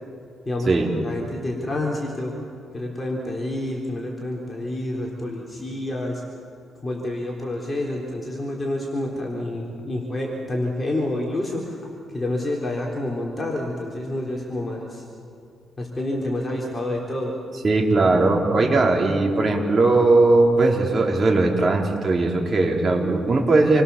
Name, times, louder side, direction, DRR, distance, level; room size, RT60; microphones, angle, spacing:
voice 1, 1.0-2.3 2.7-6.2 6.8-11.6 12.1-15.0 15.8-17.3, left 1 dB, 20° left, -2 dB, 3.7 m, -28 dB
voice 2, 17.6-23.8, right 2 dB, 35° right, 0 dB, 4.3 m, -19 dB
28.5 x 23.0 x 7.1 m, 2.6 s
cardioid pair, 90°, 0 cm